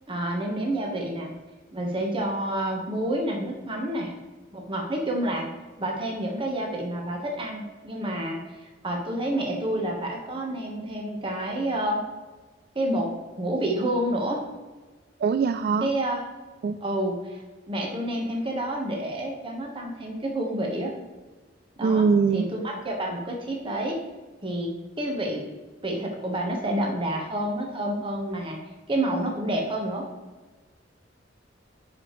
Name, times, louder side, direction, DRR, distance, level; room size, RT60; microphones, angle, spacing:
voice 1, 0.1-1.3 1.7-4.1 4.5-5.5 5.8-12.0 12.7-13.1 13.4-14.4 15.8-16.2 16.8-17.4 17.7-20.9 21.8-22.0 22.3-24.0 24.4-25.4 25.8-28.6 28.9-30.0, right 1 dB, 30° right, 0 dB, 1.2 m, -29 dB
voice 2, 15.2-15.9 16.6-16.8 21.8-22.5, right 5 dB, 55° right, 8 dB, 0.3 m, -22 dB
11.0 x 4.9 x 3.1 m, 1.3 s
head